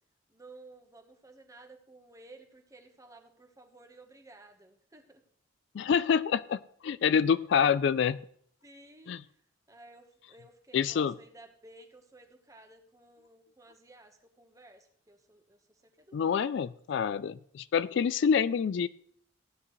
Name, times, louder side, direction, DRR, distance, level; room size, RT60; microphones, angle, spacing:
voice 1, 0.3-5.2 8.6-9.4 9.7-16.7, right 2 dB, 15° right, 5 dB, 1.2 m, -55 dB
voice 2, 5.7-8.2 9.1-9.2 10.7-11.1 16.1-18.9, left 7 dB, 60° left, 17 dB, 0.3 m, -27 dB
15.5 x 9.7 x 3.2 m, 0.63 s
head